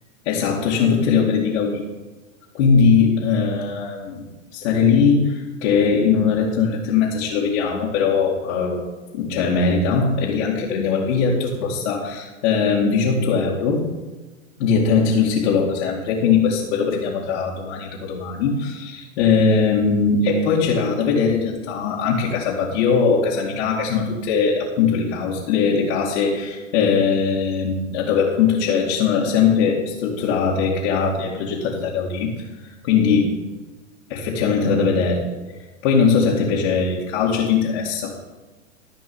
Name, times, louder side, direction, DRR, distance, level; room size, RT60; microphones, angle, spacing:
voice 1, 0.3-1.9 2.5-4.2 4.5-8.8 9.1-13.9 14.6-33.4 34.1-35.3 35.8-38.1, left 5 dB, 55° left, -5 dB, 2.4 m, -20 dB
14.5 x 5.4 x 7.0 m, 1.2 s
hypercardioid pair, 110°, 39 cm